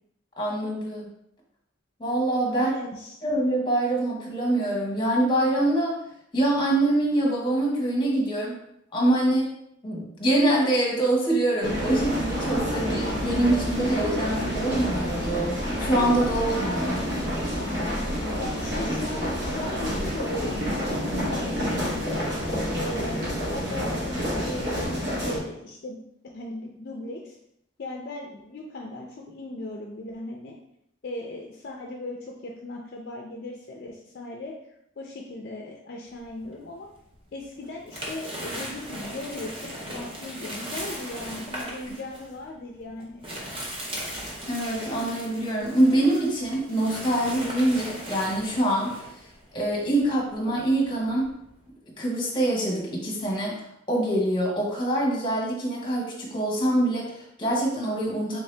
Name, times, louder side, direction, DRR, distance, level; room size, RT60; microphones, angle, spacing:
voice 1, 0.4-1.1 2.0-2.7 3.2-6.0 6.3-8.6 8.9-9.5 9.8-17.1 44.5-49.0 49.5-51.3 52.0-58.4, right 1 dB, 25° left, -2 dB, 0.9 m, -25 dB
voice 2, 2.5-3.2 18.3-22.2 22.7-26.0 26.3-27.4 27.8-30.6 31.0-34.5 35.0-36.9 37.3-39.6 39.9-43.3, left 2 dB, 50° left, 0 dB, 0.4 m, -37 dB
sound 1, 11.6-25.4, equal, 60° right, 1.0 m, -28 dB
sound 2, 36.2-37.1 37.6-51.7, equal, 30° right, 0.7 m, -38 dB
3.5 x 2.7 x 3.2 m, 0.75 s
head